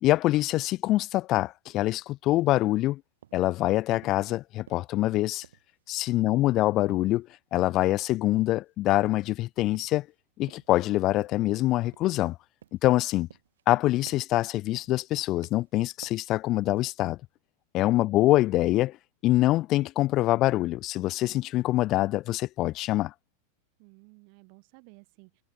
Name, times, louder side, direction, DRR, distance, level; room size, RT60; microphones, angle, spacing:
voice 1, 0.0-3.0 3.3-5.4 5.9-10.1 10.4-12.3 12.7-13.3 13.7-17.2 17.7-18.9 19.2-23.1, left 16 dB, 35° left, 0.4 m, -25 dB
sound 1, 2.4-2.6 3.2-3.5 3.9-4.2 4.7-5.1 5.4-5.9 6.2-6.5 6.9-7.2 7.6-7.8 8.3-8.6 9.1-9.4 9.7-10.1 10.5-10.8 11.2-11.5 11.9-12.3 12.6-12.9 13.3-13.8 14.1-14.4 14.8-15.1 15.4-15.7 16.0-16.3 16.7-17.0, right 10 dB, 60° right, 3.6 m, -54 dB
voice 2, 6.2-6.6 18.1-18.3 23.8-25.4, right 40 dB or more, 45° right, 7.0 m, -55 dB
figure-of-eight pair, 90°, 0 cm